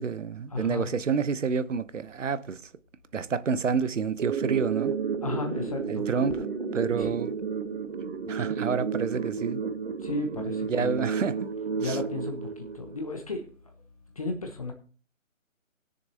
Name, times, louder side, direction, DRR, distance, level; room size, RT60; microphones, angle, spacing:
voice 1, 0.0-2.6 3.1-4.9 5.9-6.4 6.7-7.4 8.3-9.6 10.7-11.5 11.8-12.0, right 6 dB, 65° right, 0.9 m, -28 dB
voice 2, 0.5-0.9 5.2-6.0 6.9-7.1 10.0-11.0 11.8-12.4 12.7-13.5 14.2-14.7, left 2 dB, 25° left, 0.9 m, -33 dB
sound 1, 4.2-13.2, right 6 dB, 45° right, 1.4 m, -32 dB
20.0 x 6.8 x 2.8 m
figure-of-eight pair, 160°, 40 cm